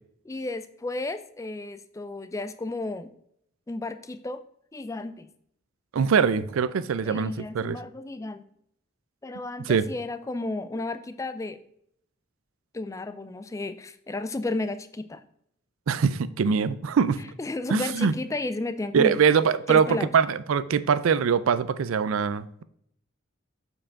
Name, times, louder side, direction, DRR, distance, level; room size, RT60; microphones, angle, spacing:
voice 1, 0.2-3.1 3.7-4.4 4.7-5.3 7.1-8.4 9.2-11.6 12.7-15.2 17.4-19.2 19.7-20.1, left 2 dB, 15° left, 11 dB, 0.3 m, -33 dB
voice 2, 5.9-7.8 9.7-9.9 15.9-17.2 17.7-18.1 18.9-22.6, right 6 dB, 80° right, 15 dB, 0.4 m, -23 dB
7.5 x 4.8 x 3.6 m, 0.71 s
head